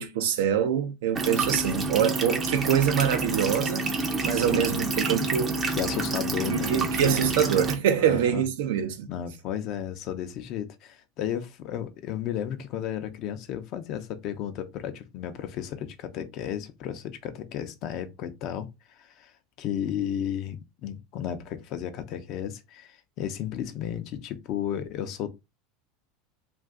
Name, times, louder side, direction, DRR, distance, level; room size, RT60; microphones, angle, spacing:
voice 1, 0.0-3.8 4.2-5.6 6.5-9.1, right 9 dB, 80° right, 0.6 m, -25 dB
sound 1, 1.1-7.7, right 3 dB, 30° right, 0.6 m, -28 dB
voice 2, 4.3-4.8 5.8-7.3 8.0-8.4 9.1-25.3, left 10 dB, 55° left, 0.6 m, -34 dB
2.5 x 2.4 x 3.6 m
supercardioid pair, 115°, 0 cm